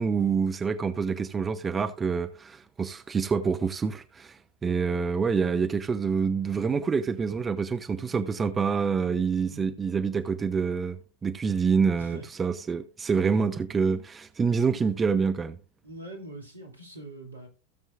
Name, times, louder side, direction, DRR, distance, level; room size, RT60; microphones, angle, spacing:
voice 1, 0.0-15.6, right 5 dB, 15° right, 0.7 m, -27 dB
voice 2, 9.4-9.8 12.0-12.3 15.8-17.5, right 1 dB, 80° right, 2.7 m, -43 dB
16.5 x 7.3 x 2.5 m
figure-of-eight pair, 90°, 0 cm